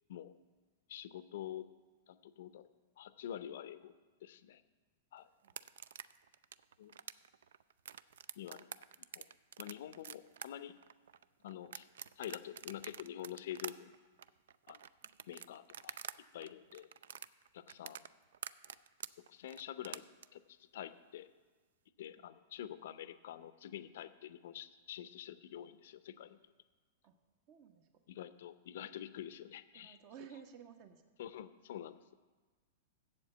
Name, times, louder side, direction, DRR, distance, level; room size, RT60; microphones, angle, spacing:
voice 1, 0.9-1.7 2.1-2.7 3.0-3.9 4.2-4.6 5.1-5.3 6.8-6.9 8.4-8.7 9.2-9.3 9.6-10.8 11.4-11.9 12.2-13.9 14.7-14.8 15.3-16.0 16.3-16.9 17.5-18.1 19.3-20.0 20.3-21.3 22.0-26.4 28.1-30.0 31.2-32.1, left 11 dB, 60° left, 14 dB, 0.5 m, -47 dB
sound 1, 5.4-16.2 16.4-20.3, right 9 dB, 65° right, 0.3 m, -48 dB
voice 2, 15.0-15.3 16.5-16.6 17.7-17.8 22.2-22.3 27.0-27.2 27.5-28.0 29.7-31.0, right 8 dB, 45° right, 8 dB, 1.0 m, -56 dB
7.5 x 7.5 x 7.9 m, 1.3 s
figure-of-eight pair, 100°, 0 cm